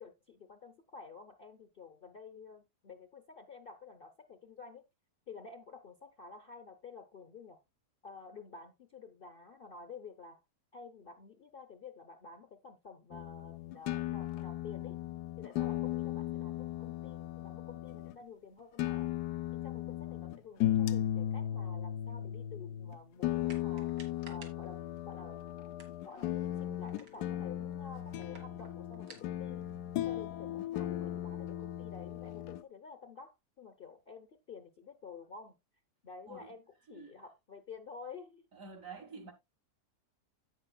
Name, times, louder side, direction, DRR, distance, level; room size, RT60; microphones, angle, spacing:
voice 1, 0.0-4.8 5.3-7.6 8.0-10.4 10.7-15.0 15.4-19.1 19.5-23.9 24.3-25.4 26.0-29.6 30.0-35.6 36.0-38.5, left 5 dB, 45° left, 0.8 m, -51 dB
sound 1, 13.1-18.1 18.8-32.6, left 12 dB, 80° left, 1.2 m, -36 dB
sound 2, 23.4-30.8, right 4 dB, 80° right, 2.3 m, -60 dB
voice 2, 38.5-39.3, right 4 dB, 55° right, 2.0 m, -48 dB
16.0 x 5.5 x 2.2 m
omnidirectional pair, 1.7 m